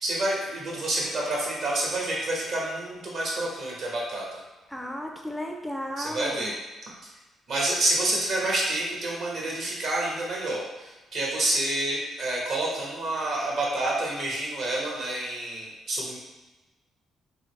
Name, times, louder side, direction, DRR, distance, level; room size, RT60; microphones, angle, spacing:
voice 1, 0.0-4.2 6.0-6.5 7.5-16.2, right 1 dB, 70° right, -4 dB, 1.2 m, -28 dB
voice 2, 4.7-6.5, equal, ahead, 1 dB, 0.4 m, -34 dB
3.9 x 2.2 x 3.2 m, 1.2 s
cardioid pair, 90°, 0 cm